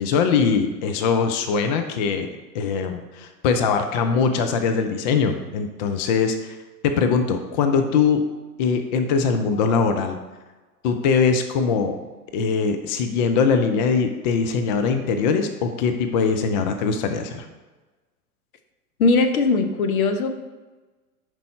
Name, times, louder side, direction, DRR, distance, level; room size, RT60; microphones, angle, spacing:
voice 1, 0.0-2.3 2.5-6.6 6.8-8.2 8.6-10.2 10.8-12.0 12.3-17.5, left 5 dB, 35° left, 6 dB, 0.4 m, -21 dB
voice 2, 19.0-20.3, left 3 dB, 65° left, 8 dB, 0.7 m, -19 dB
5.3 x 4.5 x 4.2 m, 1.2 s
figure-of-eight pair, 95°, 46 cm